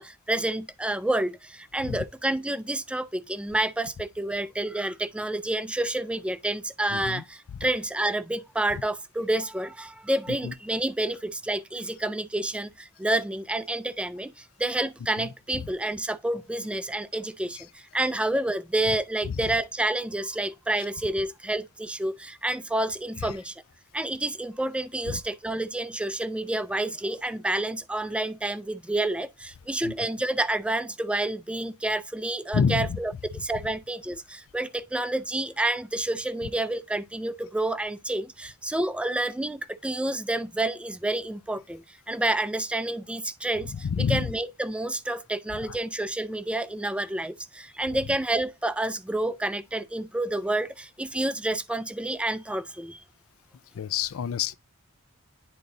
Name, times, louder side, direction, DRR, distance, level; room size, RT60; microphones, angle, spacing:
voice 1, 0.0-23.6 23.9-43.7 44.1-53.0, right 1 dB, 5° right, 0.3 m, -29 dB
voice 2, 6.9-7.2 7.5-7.7 8.7-8.8 10.3-10.5 15.2-15.3 15.6-15.7 17.6-17.7 18.9-19.0 19.2-19.5 20.8-20.9 23.2-23.4 25.1-25.2 28.0-28.1 29.8-30.0 32.5-33.0 33.3-33.4 43.6-44.3 45.7-45.8 53.7-54.5, left 6 dB, 85° left, 0.4 m, -29 dB
10.0 x 3.9 x 2.6 m
head